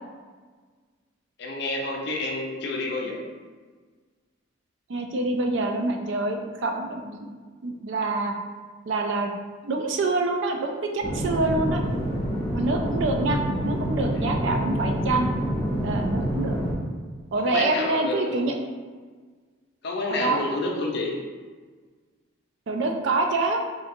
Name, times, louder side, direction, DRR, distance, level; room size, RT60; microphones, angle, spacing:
voice 1, 1.4-3.2 17.3-18.5 19.8-21.2, left 2 dB, 55° left, -1 dB, 0.5 m, -29 dB
voice 2, 4.9-7.3 7.6-8.3 8.9-9.3 9.6-11.8 12.5-13.4 13.6-15.3 15.8-16.6 17.3-18.5 20.1-20.4 22.7-23.6, right 2 dB, 60° right, 4 dB, 0.4 m, -26 dB
sound 1, 11.0-16.8, equal, 30° left, 0.8 m, -27 dB
3.5 x 2.7 x 2.6 m, 1.5 s
head